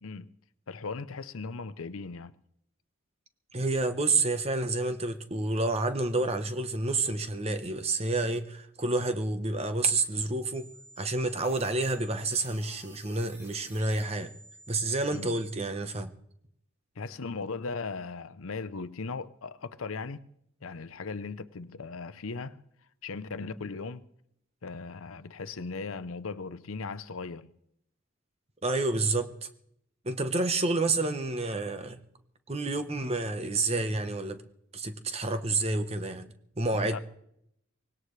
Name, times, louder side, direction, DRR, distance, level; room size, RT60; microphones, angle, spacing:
voice 1, 0.0-0.3 0.7-2.3 15.1-15.3 17.0-20.2 20.6-22.6 23.0-24.1 24.6-27.5 36.7-37.0, left 4 dB, 85° left, 0.7 m, -38 dB
voice 2, 3.5-10.7 11.0-14.3 14.7-16.1 28.6-29.5 30.0-32.1 32.5-34.4 34.7-36.3 36.6-37.0, right 3 dB, 30° right, 1.0 m, -29 dB
sound 1, 10.5-15.5, right 1 dB, 10° right, 2.1 m, -53 dB
24.5 x 18.0 x 3.2 m
head